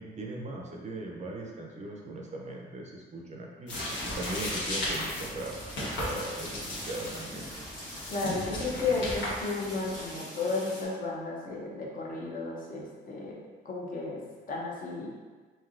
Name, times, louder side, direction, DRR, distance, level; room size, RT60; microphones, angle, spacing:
voice 1, 0.0-5.5 5.8-7.5, right 2 dB, 35° right, 0 dB, 0.5 m, -39 dB
sound 1, 3.7-10.1, left 1 dB, 70° left, 1.1 m, -36 dB
sound 2, 5.4-10.8, equal, 20° left, 1.5 m, -44 dB
voice 2, 8.1-13.4 13.6-14.2 14.5-15.1, left 3 dB, 45° left, -3 dB, 0.7 m, -33 dB
3.2 x 2.7 x 2.4 m, 1.4 s
cardioid pair, 90°, 20 cm